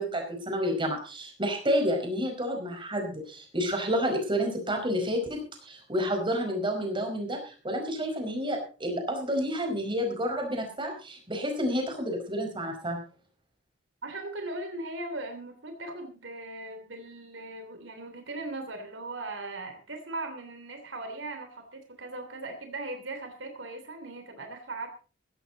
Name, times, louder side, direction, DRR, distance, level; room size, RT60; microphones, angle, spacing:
voice 1, 0.0-13.0, equal, 25° right, 3 dB, 5.1 m, -30 dB
voice 2, 14.0-24.9, right 2 dB, 75° right, 6 dB, 3.1 m, -39 dB
16.0 x 14.0 x 4.0 m, 0.35 s
head